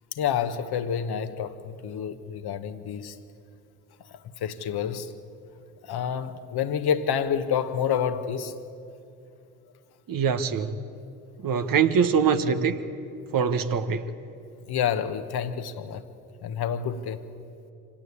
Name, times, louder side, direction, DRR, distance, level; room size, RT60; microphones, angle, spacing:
voice 1, 0.1-3.1 4.4-5.1 5.8-8.5 14.7-16.0 16.4-17.2, left 8 dB, 55° left, 9 dB, 1.5 m, -28 dB
voice 2, 10.1-10.8 11.4-12.8 13.3-14.1, right 6 dB, 45° right, 9 dB, 1.5 m, -23 dB
25.5 x 17.5 x 8.6 m, 2.6 s
hypercardioid pair, 55°, 46 cm